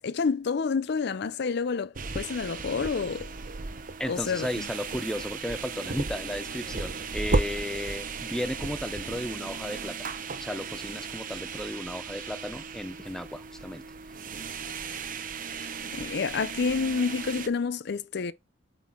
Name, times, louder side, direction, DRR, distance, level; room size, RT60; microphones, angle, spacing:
voice 1, 0.0-3.3 4.1-4.6 15.6-18.3, left 5 dB, 60° left, 0.5 m, -29 dB
sound 1, 2.0-17.5, right 4 dB, 45° right, 0.8 m, -35 dB
voice 2, 4.0-10.1 10.4-13.8, left 1 dB, 5° left, 0.5 m, -34 dB
8.3 x 4.0 x 3.6 m
head